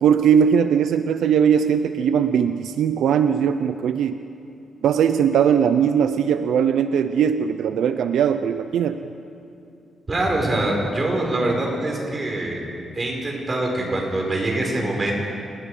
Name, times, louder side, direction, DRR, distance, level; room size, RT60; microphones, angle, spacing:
voice 1, 0.0-4.2 4.8-9.1, right 8 dB, 85° right, 9 dB, 0.6 m, -19 dB
voice 2, 10.1-12.6 12.9-15.1, right 2 dB, 30° right, 0 dB, 5.0 m, -24 dB
29.0 x 19.0 x 5.0 m, 2.6 s
cardioid pair, 120°, 0 cm